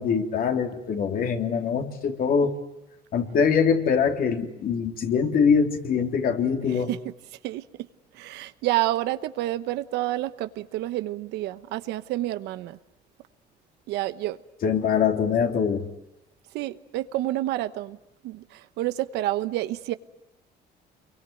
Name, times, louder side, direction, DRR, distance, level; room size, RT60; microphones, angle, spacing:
voice 1, 0.0-2.6 3.1-6.9 14.6-15.9, left 6 dB, 60° left, 3.2 m, -23 dB
voice 2, 6.7-7.1 7.4-7.6 8.1-12.8 13.9-14.4 16.5-18.0 18.2-19.9, right 15 dB, 90° right, 1.1 m, -29 dB
27.0 x 23.0 x 9.3 m
cardioid pair, 110°, 17 cm